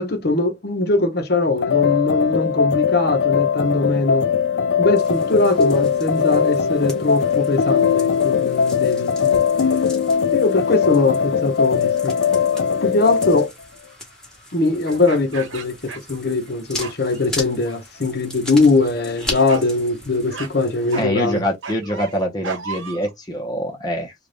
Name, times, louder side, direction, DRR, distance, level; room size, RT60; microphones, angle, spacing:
voice 1, 0.0-4.2 4.8-9.4 10.3-12.1 12.8-13.5 14.5-15.8 16.1-21.4, left 3 dB, 55° left, 0.8 m, -21 dB
sound 1, 1.6-13.5, left 6 dB, 70° left, 0.4 m, -20 dB
sound 2, 5.0-21.0, left 2 dB, 5° left, 1.3 m, -38 dB
sound 3, 12.5-12.8 14.8-16.5 16.7-17.3 17.7-18.2 18.5-18.8 19.5-19.7 20.3-20.5 20.9-23.1, right 5 dB, 85° right, 1.0 m, -35 dB
voice 2, 20.9-24.1, equal, 20° left, 0.8 m, -24 dB
3.3 x 2.4 x 3.9 m
head